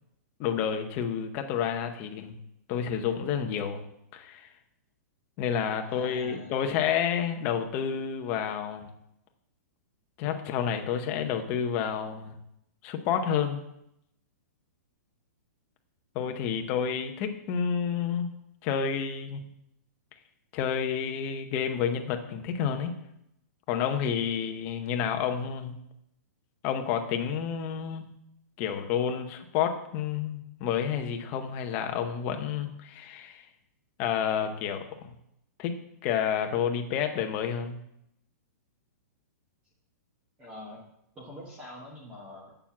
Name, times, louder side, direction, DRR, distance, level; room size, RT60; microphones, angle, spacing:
voice 1, 0.4-2.4 2.7-3.8 4.1-4.5 5.4-8.9 10.2-12.4 12.8-13.6 16.1-18.3 18.6-19.4 20.5-22.9 23.7-25.8 26.6-28.1 28.6-33.4 34.0-35.1 35.6-35.7 36.0-37.8, left 8 dB, 20° left, 5 dB, 0.7 m, -30 dB
voice 2, 5.8-6.6 40.4-40.8 41.1-42.6, left 1 dB, 10° right, -3 dB, 1.1 m, -45 dB
7.4 x 6.9 x 7.2 m, 0.79 s
hypercardioid pair, 180°, 9 cm